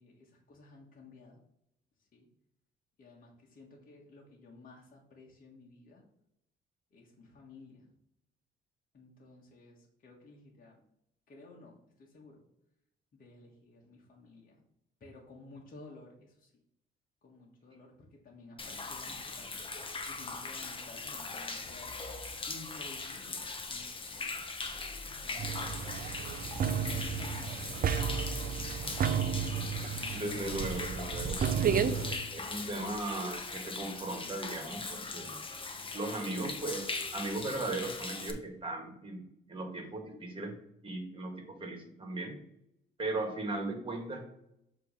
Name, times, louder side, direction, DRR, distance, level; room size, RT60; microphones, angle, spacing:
voice 1, 0.0-1.4 2.1-2.3 3.0-6.0 6.9-7.9 8.9-10.8 11.3-12.4 13.1-14.6 15.0-16.5 17.2-19.5 20.1-22.0 22.5-24.4 25.0-25.9 26.5-29.1 29.8-29.9, left 2 dB, 45° left, -2 dB, 1.4 m, -54 dB
Human voice / Rain / Stream, 18.6-38.3, left 3 dB, 25° left, 0.9 m, -40 dB
sound 1, 25.4-32.2, right 7 dB, 45° right, 0.5 m, -32 dB
voice 2, 30.1-35.4 35.9-39.2 39.5-40.6 40.8-42.4 43.0-44.3, right 2 dB, 25° right, 3 dB, 1.6 m, -37 dB
6.8 x 3.0 x 5.4 m, 0.78 s
cardioid pair, 90°, 20 cm